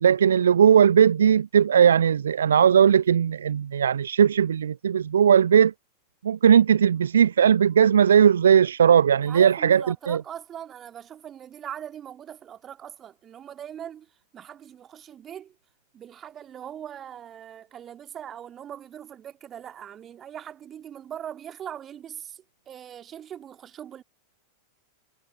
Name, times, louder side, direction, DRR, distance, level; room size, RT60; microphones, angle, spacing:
voice 1, 0.0-5.7 6.2-10.2, right 8 dB, 65° right, 0.3 m, -18 dB
voice 2, 9.2-14.1 14.3-15.6 15.9-24.0, right 9 dB, 25° right, 1.9 m, -41 dB
figure-of-eight pair, 90°, 0 cm